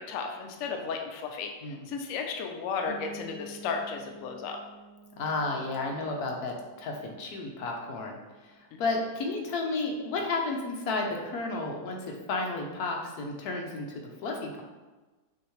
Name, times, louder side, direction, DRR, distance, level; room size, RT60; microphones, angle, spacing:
voice 1, 0.0-4.6 8.7-8.8, left 5 dB, 85° left, 3 dB, 0.7 m, -34 dB
sound 1, 2.9-8.5, right 3 dB, 30° right, 0.9 m, -50 dB
voice 2, 5.2-8.2 8.4-14.6, left 3 dB, 65° left, 1 dB, 1.1 m, -32 dB
6.2 x 2.8 x 3.0 m, 1.2 s
omnidirectional pair, 2.0 m